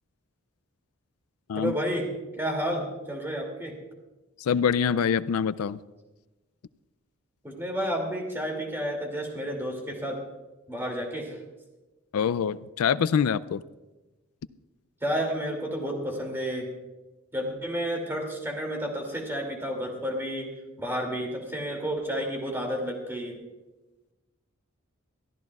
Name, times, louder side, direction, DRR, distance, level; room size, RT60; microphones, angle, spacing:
voice 1, 1.5-2.1 2.4-3.8 7.4-10.2 10.7-11.4 15.0-16.7 17.3-23.4, equal, 10° right, 1 dB, 2.5 m, -31 dB
voice 2, 4.4-5.8 12.1-13.6, left 7 dB, 85° left, 17 dB, 0.4 m, -25 dB
22.5 x 13.5 x 2.4 m, 1.1 s
head